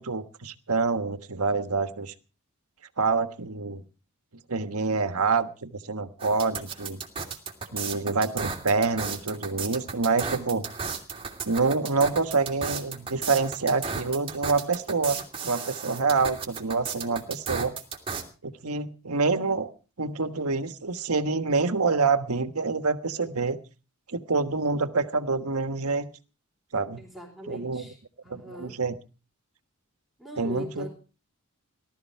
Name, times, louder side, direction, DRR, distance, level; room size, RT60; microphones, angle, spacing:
voice 1, 0.0-2.1 3.0-3.8 4.5-7.0 7.7-10.6 11.4-17.7 18.4-19.7 20.0-23.6 24.1-26.1 26.7-27.0 27.5-27.9 28.3-28.9 30.4-30.9, right 4 dB, 90° right, 9 dB, 1.4 m, -27 dB
sound 1, 6.2-18.2, right 5 dB, 25° right, 2.7 m, -34 dB
voice 2, 27.0-28.0 28.2-28.8 30.2-30.9, equal, ahead, -2 dB, 4.1 m, -41 dB
18.5 x 13.0 x 4.7 m, 0.36 s
head